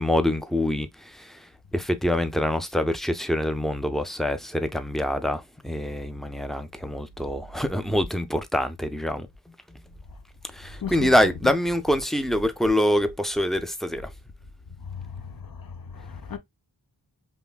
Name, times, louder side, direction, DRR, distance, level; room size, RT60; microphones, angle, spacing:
voice 1, 0.0-1.5 1.7-9.3 9.7-9.8 10.5-14.1, left 1 dB, ahead, 0.5 m, -25 dB
voice 2, 10.8-11.1 14.9-16.4, left 6 dB, 55° left, 0.8 m, -36 dB
5.5 x 2.1 x 2.3 m
wide cardioid pair, 55°, 42 cm